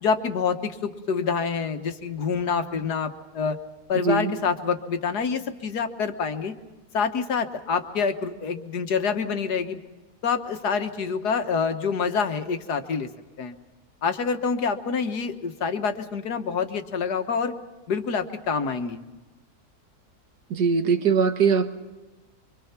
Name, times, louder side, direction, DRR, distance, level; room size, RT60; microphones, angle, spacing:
voice 1, 0.0-3.6 3.9-6.5 6.9-9.8 10.2-13.1 13.4-13.6 14.0-17.5 17.9-19.0, left 5 dB, 80° left, 7 dB, 1.9 m, -27 dB
voice 2, 20.5-21.8, right 5 dB, 85° right, 8 dB, 2.0 m, -21 dB
25.0 x 24.5 x 5.9 m, 1.2 s
omnidirectional pair, 1.7 m